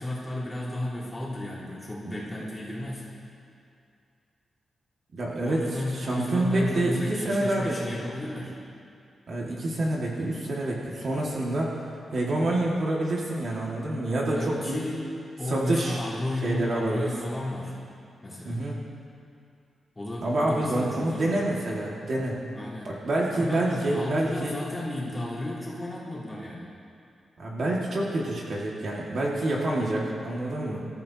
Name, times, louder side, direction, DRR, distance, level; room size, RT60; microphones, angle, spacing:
voice 1, 0.0-3.1 5.4-8.5 14.3-15.0 15.4-17.8 18.2-18.6 19.9-21.5 22.5-23.0 23.3-26.7, left 1 dB, 15° left, -9 dB, 3.8 m, -33 dB
voice 2, 5.1-7.8 9.3-11.8 12.1-14.8 15.5-16.0 16.4-17.1 18.5-18.8 20.2-22.4 22.8-24.5 27.4-30.9, right 1 dB, 50° right, -4 dB, 2.0 m, -27 dB
25.0 x 14.0 x 2.9 m, 2.5 s
wide cardioid pair, 175°, 0 cm